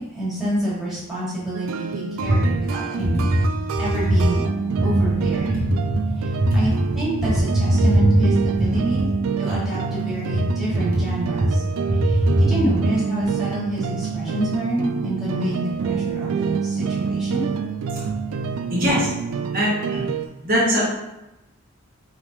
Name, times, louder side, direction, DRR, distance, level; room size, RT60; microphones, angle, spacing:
voice 1, 0.0-3.3 3.8-4.4 4.8-5.7 6.2-9.1 9.4-11.6 11.9-17.5, equal, ahead, -10 dB, 1.4 m, -28 dB
sound 1, 1.5-20.3, right 6 dB, 80° right, 0.3 m, -27 dB
voice 2, 6.0-6.6 7.5-8.1 8.9-9.0 11.4-11.5 11.9-12.5 18.7-19.1 19.5-20.0 20.4-20.9, equal, 40° right, -7 dB, 1.0 m, -20 dB
4.8 x 3.3 x 2.6 m, 0.95 s
head